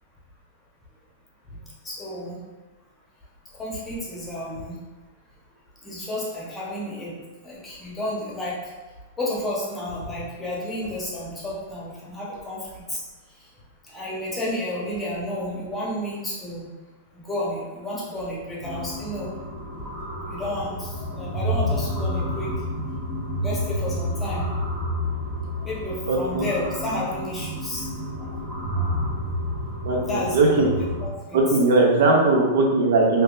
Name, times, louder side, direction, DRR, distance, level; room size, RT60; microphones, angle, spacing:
voice 1, 1.8-2.4 3.6-4.8 5.8-7.1 7.4-8.5 9.2-13.0 13.9-16.7 17.1-19.3 20.2-22.5 23.4-24.4 25.6-27.8 28.7-28.9 30.0-30.6 31.0-31.4, left 1 dB, 10° left, -6 dB, 0.9 m, -31 dB
sound 1, 18.6-31.1, equal, 15° right, 1.0 m, -30 dB
voice 2, 26.1-26.5 29.8-30.7 31.3-33.2, right 3 dB, 70° right, -1 dB, 0.7 m, -19 dB
3.6 x 2.8 x 2.4 m, 1.2 s
supercardioid pair, 145°, 0 cm